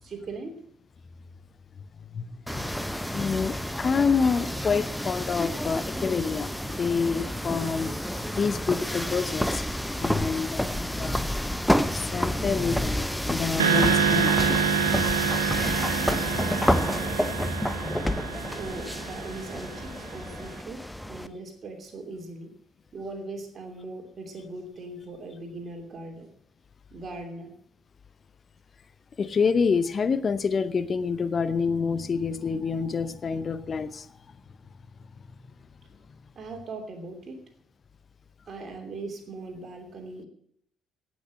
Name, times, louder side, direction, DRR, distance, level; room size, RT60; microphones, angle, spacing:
voice 1, 0.0-0.6 18.6-22.5 22.9-26.3 26.9-27.5 36.3-37.5 38.5-40.3, right 3 dB, 45° right, 5 dB, 2.9 m, -39 dB
voice 2, 2.1-2.7 3.1-6.5 6.8-11.2 11.9-14.9 29.2-34.1, left 5 dB, 40° left, 15 dB, 0.7 m, -27 dB
sound 1, 2.5-21.3, equal, 5° left, 0.9 m, -29 dB
sound 2, 13.6-20.0, right 6 dB, 80° right, 1.3 m, -27 dB
17.5 x 6.4 x 7.6 m, 0.68 s
figure-of-eight pair, 45°, 0 cm